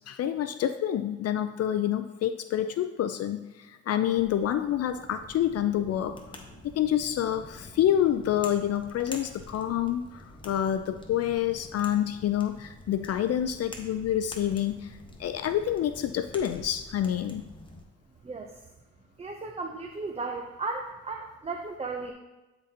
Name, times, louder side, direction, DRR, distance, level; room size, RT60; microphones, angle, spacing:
voice 1, 0.1-6.2 6.8-17.4, left 10 dB, 55° left, 9 dB, 0.4 m, -28 dB
sound 1, 4.0-17.8, left 1 dB, 15° left, 1.1 m, -47 dB
voice 2, 18.2-18.6 19.2-22.1, right 3 dB, 20° right, 2 dB, 0.6 m, -35 dB
11.5 x 4.0 x 2.8 m, 1.1 s
cardioid pair, 90°, 30 cm